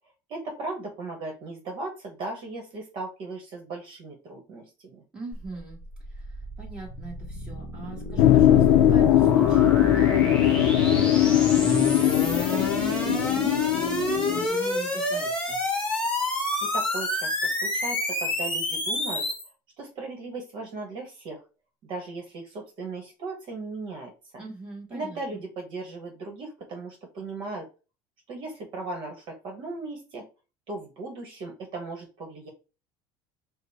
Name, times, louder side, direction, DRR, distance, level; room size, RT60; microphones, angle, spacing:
voice 1, 0.3-5.0 16.6-19.3 19.8-21.4 21.8-24.1 24.9-27.7 28.3-30.2 30.7-32.5, right 3 dB, 50° right, 1 dB, 1.1 m, -37 dB
voice 2, 5.1-5.8 6.1-15.6 24.3-25.4, right 2 dB, 10° right, -4 dB, 1.7 m, -41 dB
sound 1, 5.3-19.5, left 1 dB, 10° left, 1.2 m, -29 dB
sound 2, 8.2-14.5, left 12 dB, 80° left, 0.5 m, -20 dB
5.1 x 2.1 x 4.1 m, 0.32 s
cardioid pair, 150°, 11 cm